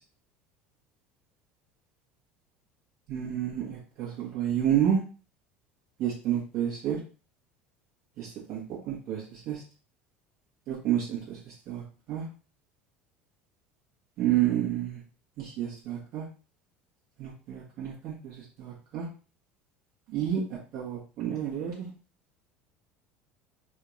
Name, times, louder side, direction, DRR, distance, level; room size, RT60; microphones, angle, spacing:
voice 1, 3.1-5.0 6.0-7.0 8.2-8.6 8.9-9.2 9.5-9.6 10.7-11.2 11.7-11.8 12.1-12.2 14.2-15.0 15.4-16.2 17.2-18.3 18.6-19.1 20.1-20.4 20.7-21.9, right 10 dB, 55° right, -5 dB, 1.6 m, -29 dB
4.1 x 2.6 x 3.2 m, 0.37 s
figure-of-eight pair, 70°, 6 cm